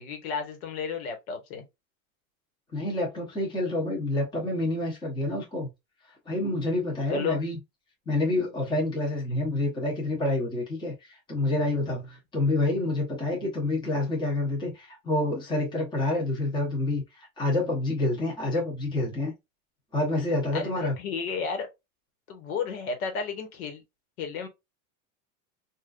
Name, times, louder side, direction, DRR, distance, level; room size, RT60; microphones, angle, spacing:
voice 1, 0.0-1.6 7.1-7.4 20.5-21.7 22.3-23.8 24.2-24.5, left 6 dB, 85° left, 1.3 m, -32 dB
voice 2, 2.7-5.7 6.3-7.6 8.1-19.3 19.9-20.9, left 2 dB, 10° left, 0.9 m, -28 dB
3.6 x 2.6 x 2.4 m
supercardioid pair, 165°, 42 cm